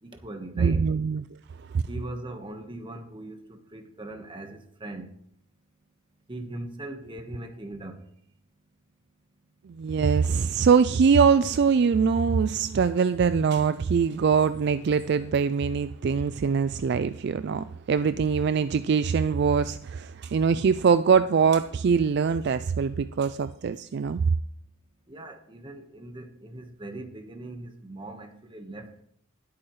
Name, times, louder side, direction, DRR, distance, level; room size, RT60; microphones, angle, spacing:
voice 1, 0.0-0.9 1.9-5.1 6.3-8.0 25.1-29.0, right 1 dB, 25° right, 1.4 m, -40 dB
voice 2, 0.6-1.2 1.7-1.8 9.7-24.2, right 6 dB, 55° right, 0.3 m, -23 dB
19.5 x 8.7 x 3.2 m
head